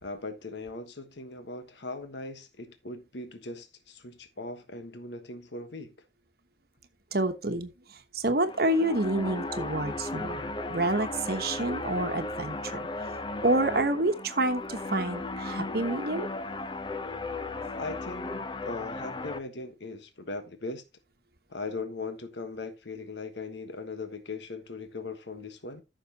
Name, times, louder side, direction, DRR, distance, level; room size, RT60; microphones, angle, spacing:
voice 1, 0.0-5.9 17.8-20.8 21.5-25.8, left 3 dB, 70° left, 1.3 m, -39 dB
voice 2, 7.1-7.7 8.1-16.3, right 2 dB, 55° right, 1.2 m, -28 dB
sound 1, 8.3-19.4, left 2 dB, 25° left, 0.8 m, -36 dB
14.5 x 6.5 x 2.9 m
head